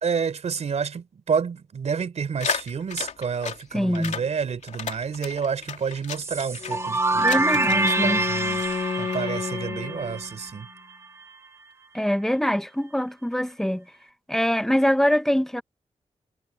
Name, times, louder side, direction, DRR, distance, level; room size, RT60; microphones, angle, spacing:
voice 1, 0.0-7.2 7.7-8.6 9.0-10.7, right 6 dB, 70° right, 4.0 m, -29 dB
sound 1, 2.4-3.6 3.9-4.3 4.6-6.8 7.2-8.1 8.4-9.2, left 6 dB, 80° left, 2.7 m, -34 dB
voice 2, 3.7-4.2 7.2-8.2 11.9-13.8 14.3-15.6, equal, 5° left, 1.3 m, -24 dB
sound 2, 6.2-10.9, right 2 dB, 25° right, 2.1 m, -26 dB
Wind instrument woodwind instrument, 6.6-10.5, left 6 dB, 50° left, 0.8 m, -32 dB
wide cardioid pair, 155°, 12 cm